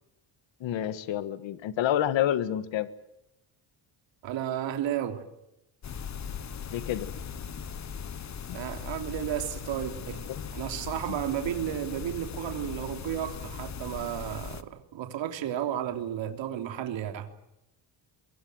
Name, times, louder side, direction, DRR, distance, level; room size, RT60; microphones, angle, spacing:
voice 1, 0.6-2.9 6.7-7.1 8.5-8.6 10.3-10.4, left 11 dB, 70° left, 13 dB, 1.7 m, -28 dB
voice 2, 4.2-5.2 8.5-10.2 10.5-17.3, right 10 dB, 70° right, 6 dB, 3.3 m, -33 dB
sound 1, 5.8-14.6, left 7 dB, 35° left, 1.4 m, -39 dB
24.0 x 23.5 x 7.9 m, 0.86 s
cardioid pair, 130°, 47 cm